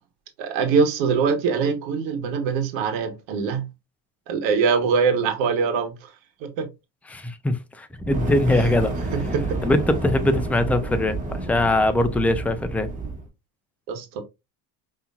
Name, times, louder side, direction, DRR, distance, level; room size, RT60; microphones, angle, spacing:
voice 1, 0.4-3.7 4.3-5.9 6.4-6.7 8.5-8.7 9.1-9.4 13.9-14.2, right 5 dB, 75° right, 1.3 m, -23 dB
voice 2, 7.1-8.9 9.6-12.9, left 1 dB, 5° left, 0.6 m, -22 dB
Fire, 8.0-13.3, right 2 dB, 15° right, 1.8 m, -30 dB
5.3 x 3.0 x 2.4 m
supercardioid pair, 85°, 46 cm